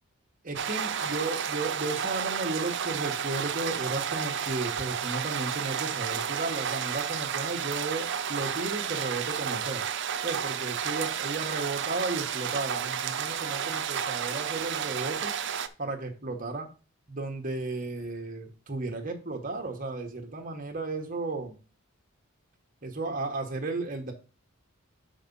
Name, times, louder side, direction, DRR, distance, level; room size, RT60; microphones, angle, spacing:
voice 1, 0.4-9.8 10.2-15.3 15.8-16.7 17.1-21.6 22.8-24.1, right 3 dB, 40° right, 3 dB, 1.3 m, -34 dB
sound 1, 0.6-15.7, right 8 dB, 55° right, 0.5 m, -32 dB
6.0 x 5.2 x 5.5 m, 0.34 s
head